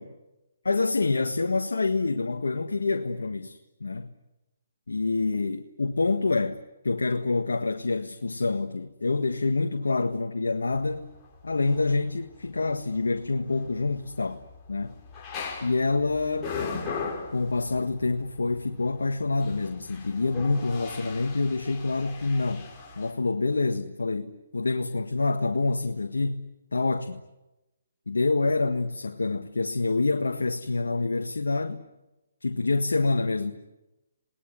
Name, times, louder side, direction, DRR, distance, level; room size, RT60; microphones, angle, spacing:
voice 1, 0.6-4.1 4.9-6.6 6.8-11.1 11.4-15.0 15.6-16.6 17.3-22.7 23.0-27.2 28.1-31.9 32.4-33.5, left 3 dB, 90° left, 1.6 m, -27 dB
sound 1, 10.7-23.1, left 5 dB, 20° left, 5.7 m, -39 dB
29.0 x 20.0 x 9.9 m
hypercardioid pair, 150°, 0 cm